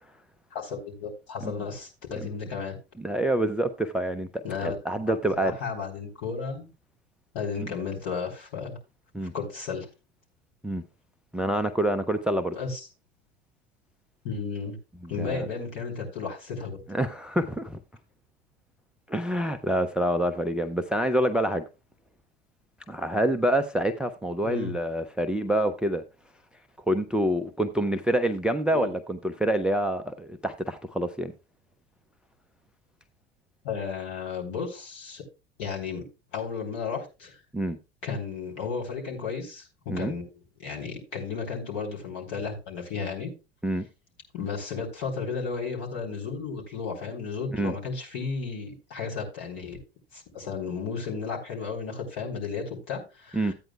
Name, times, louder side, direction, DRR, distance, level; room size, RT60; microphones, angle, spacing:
voice 1, 0.5-2.7 4.4-4.8 5.1-5.2 5.4-6.7 7.3-8.8 9.3-9.9 12.5-12.9 14.2-14.8 15.1-16.8 24.4-24.7 28.7-28.9 33.6-35.2 35.6-36.0 36.3-37.4 38.0-40.2 40.6-43.3 44.3-49.8 50.1-53.5, left 5 dB, 55° left, 3.8 m, -33 dB
voice 2, 3.0-5.5 9.1-9.3 10.6-10.8 11.3-12.6 15.2-15.5 16.9-17.8 19.1-21.6 22.9-26.0 26.9-31.3 37.5-37.8 39.9-40.1 43.6-43.8 47.5-47.7 53.3-53.5, right 1 dB, 5° right, 0.5 m, -27 dB
14.0 x 8.9 x 2.3 m
figure-of-eight pair, 75°, 32 cm